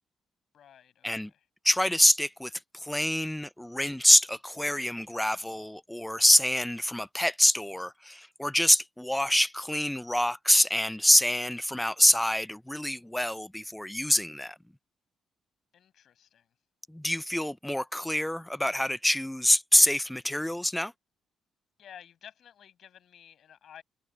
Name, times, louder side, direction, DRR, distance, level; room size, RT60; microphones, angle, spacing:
voice 1, 0.5-1.4 15.7-16.5 21.8-23.8, left 9 dB, 65° left, 6.5 m, -52 dB
voice 2, 1.6-2.5 2.8-14.6 16.9-20.9, left 1 dB, 5° left, 0.5 m, -25 dB
cardioid pair, 90°, 0 cm